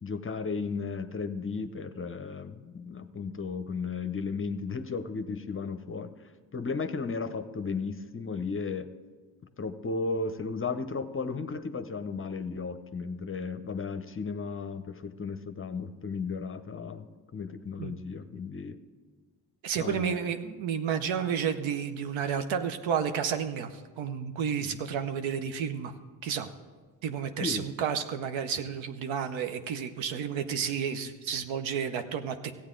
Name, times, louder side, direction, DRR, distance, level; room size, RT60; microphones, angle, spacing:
voice 1, 0.0-6.1 6.5-8.9 9.6-18.8 19.8-20.3 24.6-24.8 27.4-27.7, left 4 dB, 25° left, 10 dB, 0.7 m, -34 dB
voice 2, 19.6-25.9 26.2-26.5 27.0-32.5, right 7 dB, 70° right, 8 dB, 0.8 m, -31 dB
15.0 x 8.6 x 3.8 m, 1.4 s
hypercardioid pair, 55°, 48 cm